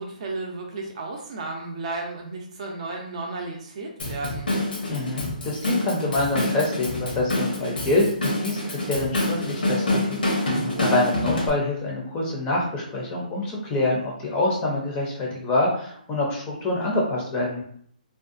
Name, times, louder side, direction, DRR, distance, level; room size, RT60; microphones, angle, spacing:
voice 1, 0.0-4.5 10.4-10.9, right 3 dB, 45° right, 1 dB, 0.6 m, -34 dB
Drum kit / Drum, 4.0-11.5, left 1 dB, 90° left, 0.9 m, -27 dB
voice 2, 4.9-17.6, left 2 dB, 15° left, -2 dB, 0.5 m, -26 dB
2.6 x 2.2 x 2.5 m, 0.62 s
hypercardioid pair, 155°, 5 cm